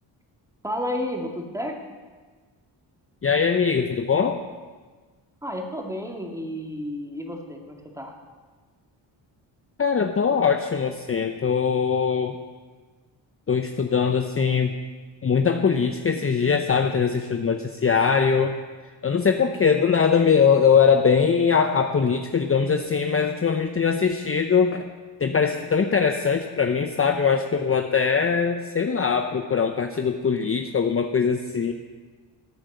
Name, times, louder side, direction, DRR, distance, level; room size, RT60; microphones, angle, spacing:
voice 1, 0.6-1.8 5.4-8.1, left 1 dB, 5° right, 1 dB, 2.4 m, -31 dB
voice 2, 3.2-4.4 9.8-12.4 13.5-14.7 15.2-18.5 19.0-24.9 25.2-31.7, left 6 dB, 30° left, 6 dB, 0.7 m, -21 dB
14.0 x 8.7 x 6.9 m, 1.4 s
cardioid pair, 70°, 45 cm